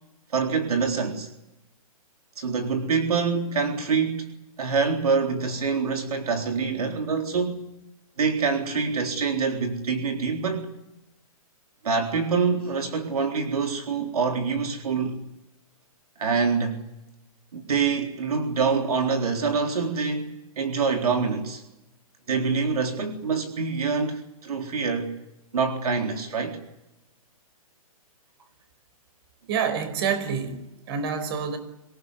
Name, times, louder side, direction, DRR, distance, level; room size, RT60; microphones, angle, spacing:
voice 1, 0.3-1.3 2.4-4.3 4.6-7.7 8.2-10.7 11.8-15.2 16.2-16.8 17.5-21.6 22.3-25.1 25.5-26.6, right 5 dB, 80° right, 4 dB, 3.9 m, -25 dB
voice 2, 29.5-31.6, right 6 dB, 40° right, 11 dB, 4.9 m, -27 dB
25.5 x 18.5 x 9.7 m, 0.94 s
hypercardioid pair, 155°, 19 cm